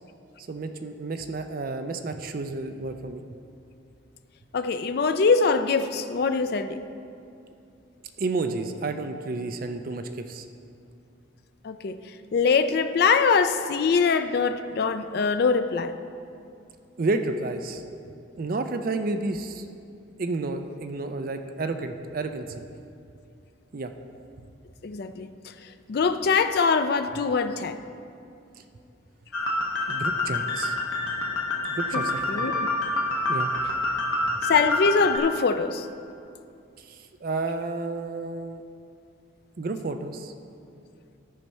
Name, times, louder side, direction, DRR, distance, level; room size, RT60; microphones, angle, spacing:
voice 1, 0.5-3.2 8.2-10.5 17.0-18.0 18.4-19.7 20.2-22.7 23.7-23.9 29.9-30.8 31.7-32.5 33.3-33.5 36.8-38.6 39.6-40.3, right 3 dB, 45° right, 7 dB, 0.4 m, -31 dB
voice 2, 4.5-6.8 11.6-12.0 12.3-15.9 24.8-25.3 25.9-27.8 31.9-32.0 32.3-32.7 34.4-35.9, left 5 dB, 50° left, 9 dB, 0.4 m, -23 dB
sound 1, 29.3-35.2, left 2 dB, 90° left, 1.0 m, -27 dB
13.0 x 4.5 x 5.4 m, 2.5 s
head